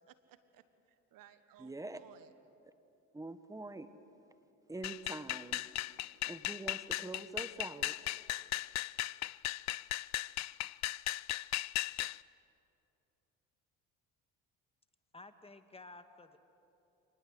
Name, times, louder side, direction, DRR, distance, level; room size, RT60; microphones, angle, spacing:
voice 1, 0.0-2.3, right 11 dB, 70° right, 12 dB, 1.4 m, -61 dB
voice 2, 1.6-2.0 3.1-3.9 4.7-5.6 6.3-7.9, right 2 dB, 10° right, 11 dB, 1.3 m, -44 dB
sound 1, 4.8-12.2, left 16 dB, 50° left, 0.5 m, -37 dB
voice 3, 15.1-16.4, left 3 dB, 15° left, 9 dB, 1.6 m, -53 dB
26.5 x 20.0 x 8.0 m, 2.8 s
supercardioid pair, 75°, 35 cm